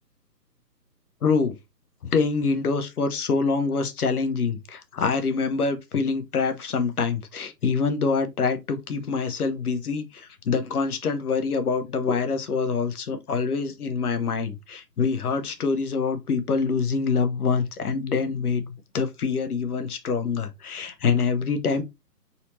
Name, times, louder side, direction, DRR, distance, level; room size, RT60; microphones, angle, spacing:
voice 1, 1.2-1.6 2.0-21.8, left 5 dB, 65° left, 1.0 m, -25 dB
4.2 x 2.7 x 4.2 m
figure-of-eight pair, 140°, 50 cm